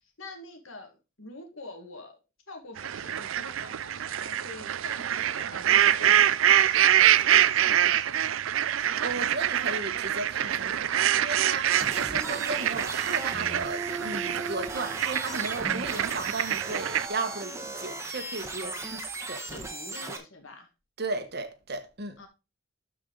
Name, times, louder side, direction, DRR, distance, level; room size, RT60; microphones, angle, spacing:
voice 1, 0.2-2.2 2.5-8.3 18.6-20.7 22.2-22.3, left 2 dB, 75° left, 1.9 m, -46 dB
sound 1, 2.8-17.1, right 11 dB, 75° right, 0.4 m, -25 dB
voice 2, 8.7-19.0 19.3-19.4 21.0-22.2, right 3 dB, 55° right, 1.2 m, -35 dB
sound 2, 11.7-20.2, right 2 dB, 15° right, 1.2 m, -37 dB
13.0 x 4.7 x 3.9 m
head